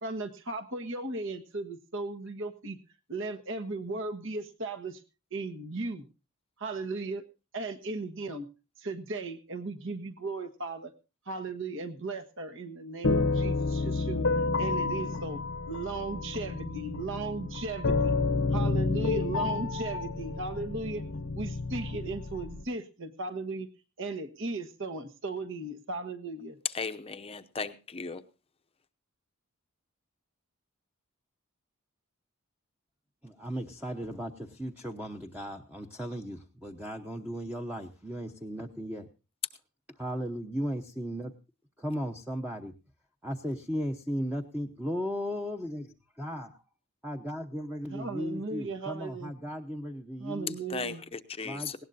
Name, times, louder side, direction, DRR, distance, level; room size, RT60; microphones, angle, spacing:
voice 1, 0.0-2.8 3.1-5.0 5.3-6.0 6.6-7.2 7.5-8.5 8.8-10.9 11.3-14.3 14.6-15.4 15.7-18.2 18.5-21.0 21.3-23.7 24.0-26.6 47.9-49.3 50.2-51.0, right 3 dB, 60° right, 7 dB, 1.4 m, -36 dB
sound 1, 13.0-22.6, left 3 dB, 60° left, 0.8 m, -30 dB
voice 2, 26.7-28.2 50.7-51.8, left 4 dB, 25° left, 10 dB, 0.7 m, -37 dB
voice 3, 33.2-39.1 40.0-41.3 41.8-42.7 43.2-45.8 46.2-46.5 47.0-50.6 51.4-51.8, equal, 5° right, 3 dB, 0.9 m, -36 dB
19.5 x 17.5 x 2.6 m, 0.31 s
head